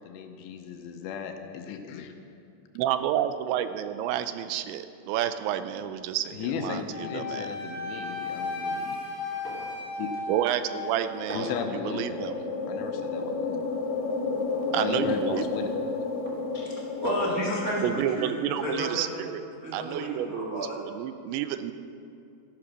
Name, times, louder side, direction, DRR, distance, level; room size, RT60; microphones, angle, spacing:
voice 1, 0.0-2.1 6.3-9.0 10.0-10.2 11.3-12.3 12.7-13.6 14.5-15.7, left 7 dB, 80° left, 5 dB, 3.0 m, -36 dB
voice 2, 2.8-7.5 10.3-11.5 11.9-12.3 14.7-15.5 17.8-21.7, right 11 dB, 85° right, 11 dB, 3.0 m, -30 dB
Wind instrument woodwind instrument, 6.9-11.2, left 3 dB, 35° left, 2.2 m, -35 dB
sound 1, 9.4-9.8 10.1-10.2 11.3-11.7 12.9-13.0 14.7-15.1 16.2-16.4 17.7-17.8, right 1 dB, 5° left, 1.1 m, -41 dB
sound 2, 10.9-18.6, left 4 dB, 60° left, 2.9 m, -32 dB
voice 3, 16.5-18.3 18.6-19.1 19.6-20.8, equal, 55° right, -4 dB, 0.9 m, -31 dB
13.5 x 11.5 x 6.1 m, 2.5 s
omnidirectional pair, 5.1 m